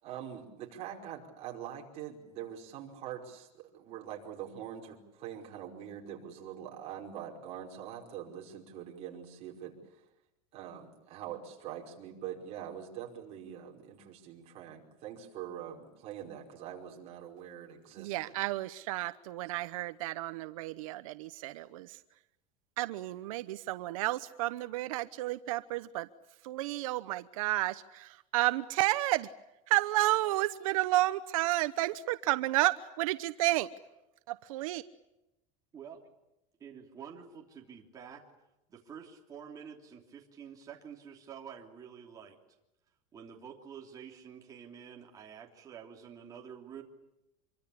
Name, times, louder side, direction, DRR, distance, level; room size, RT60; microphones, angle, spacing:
voice 1, 0.0-10.0 10.5-18.4, right 9 dB, 35° right, 5.1 m, -44 dB
voice 2, 18.0-22.0 22.8-26.1 26.4-29.3 29.7-33.7 34.3-34.8, right 17 dB, 85° right, 1.0 m, -31 dB
voice 3, 36.6-38.2 38.7-42.4 43.1-46.8, right 7 dB, 20° right, 3.2 m, -48 dB
26.5 x 23.5 x 8.6 m
cardioid pair, 170°, 17 cm